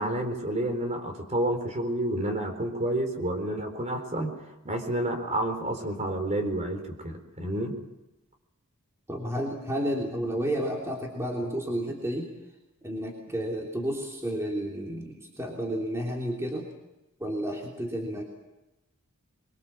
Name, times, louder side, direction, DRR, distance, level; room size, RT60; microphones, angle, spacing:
voice 1, 0.0-4.4 4.6-7.8, right 1 dB, 30° right, 5 dB, 4.1 m, -29 dB
voice 2, 9.1-12.3 12.8-16.7 17.2-18.2, equal, 15° right, -1 dB, 3.2 m, -31 dB
24.0 x 23.5 x 7.4 m, 0.97 s
head